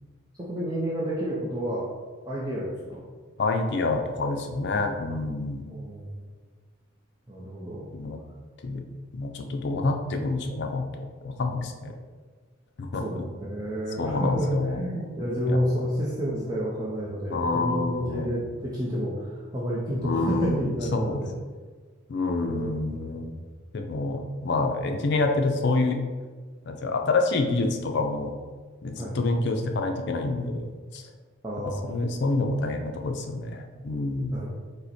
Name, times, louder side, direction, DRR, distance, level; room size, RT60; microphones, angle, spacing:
voice 1, 0.4-1.9 2.3-3.0 5.7-6.3 7.3-7.9 13.0-21.3 22.5-22.9 29.0-29.2 31.4-32.0 34.3-34.5, equal, 20° right, -7 dB, 0.6 m, -30 dB
voice 2, 3.4-5.7 7.9-8.2 8.6-8.8 9.1-11.9 12.8-13.2 14.0-14.8 15.5-15.6 17.3-18.3 20.0-21.2 22.1-23.3 23.7-26.0 26.7-28.3 28.8-31.0 31.8-34.4, left 3 dB, 55° left, 4 dB, 0.4 m, -27 dB
5.3 x 2.1 x 4.1 m, 1.5 s
head